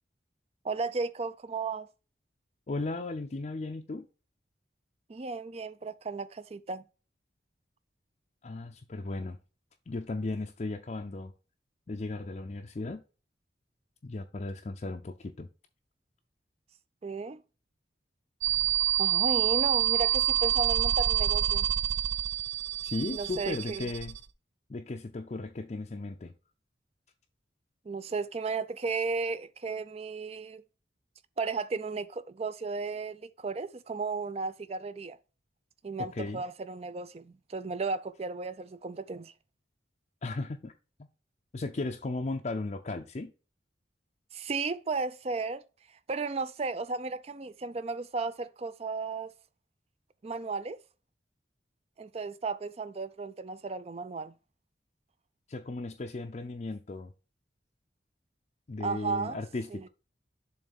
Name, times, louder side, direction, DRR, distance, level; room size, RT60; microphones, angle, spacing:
voice 1, 0.6-1.9 5.1-6.8 17.0-17.4 19.0-21.7 23.1-23.9 27.9-30.6 31.4-35.2 35.8-39.3 44.3-45.6 46.1-49.3 50.2-50.8 52.0-54.3 58.8-59.4 59.7-59.9, right 4 dB, 35° right, 0.4 m, -34 dB
voice 2, 2.7-4.1 8.4-9.4 9.9-11.3 11.9-13.0 14.0-15.5 22.8-24.2 24.7-26.3 36.0-36.4 40.2-40.7 41.0-41.1 41.5-43.3 55.5-57.1 58.7-59.9, left 2 dB, 40° left, 0.5 m, -36 dB
sound 1, 18.4-24.2, right 12 dB, 85° right, 0.6 m, -27 dB
7.2 x 3.2 x 5.2 m
head